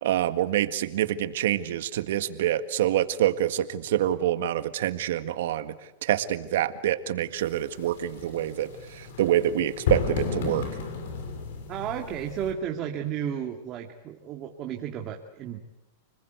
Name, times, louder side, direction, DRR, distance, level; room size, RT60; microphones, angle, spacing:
voice 1, 0.0-5.7 6.0-10.7, right 12 dB, 70° right, 11 dB, 1.8 m, -26 dB
sound 1, 7.4-12.5, left 5 dB, 70° left, 6.2 m, -33 dB
voice 2, 11.7-15.6, right 9 dB, 35° right, 3 dB, 2.2 m, -33 dB
29.5 x 21.0 x 8.2 m, 1.0 s
hypercardioid pair, 130°, 0 cm